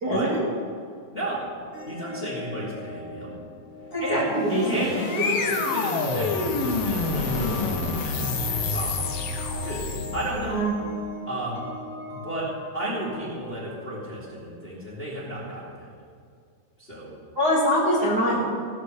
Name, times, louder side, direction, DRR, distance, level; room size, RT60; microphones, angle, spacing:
voice 1, 0.0-0.4 3.9-4.8 10.5-10.7 17.3-18.4, equal, 35° right, -8 dB, 1.7 m, -23 dB
voice 2, 1.1-1.5 1.9-3.3 4.0-9.1 9.6-10.6 11.3-11.6 12.1-12.5 12.7-15.9 16.8-17.1, right 1 dB, 20° left, -7 dB, 1.9 m, -33 dB
sound 1, 1.7-14.1, left 1 dB, 40° left, 5.1 m, -41 dB
sound 2, 4.2-10.5, left 3 dB, 80° left, 1.3 m, -27 dB
17.5 x 12.5 x 3.3 m, 2.2 s
omnidirectional pair, 4.6 m